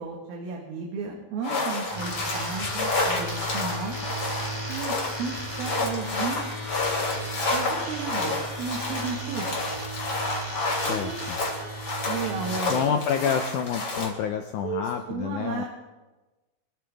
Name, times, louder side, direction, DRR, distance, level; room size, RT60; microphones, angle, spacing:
voice 1, 0.0-4.0 4.7-6.4 7.5-9.5 10.9-11.2 12.1-13.3 14.6-15.7, right 5 dB, 75° right, -1 dB, 3.4 m, -34 dB
sound 1, 1.4-14.1, left 2 dB, 35° left, 3.3 m, -30 dB
sound 2, 1.9-12.6, right 1 dB, 15° right, 3.4 m, -36 dB
voice 2, 10.7-11.4 12.7-15.6, left 7 dB, 80° left, 5 dB, 1.8 m, -28 dB
24.5 x 13.5 x 3.5 m, 1.2 s
omnidirectional pair, 4.4 m